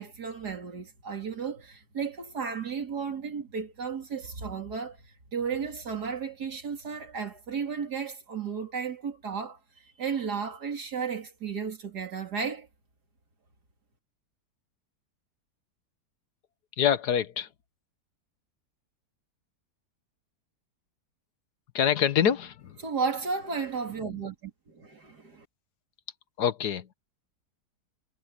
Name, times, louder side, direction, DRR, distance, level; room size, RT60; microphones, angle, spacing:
voice 1, 0.0-5.0 5.3-9.6 10.0-12.7 22.8-25.4, right 6 dB, 75° right, 3.3 m, -34 dB
voice 2, 16.8-17.5 21.7-22.8 26.4-26.9, left 8 dB, 75° left, 1.6 m, -25 dB
omnidirectional pair, 1.8 m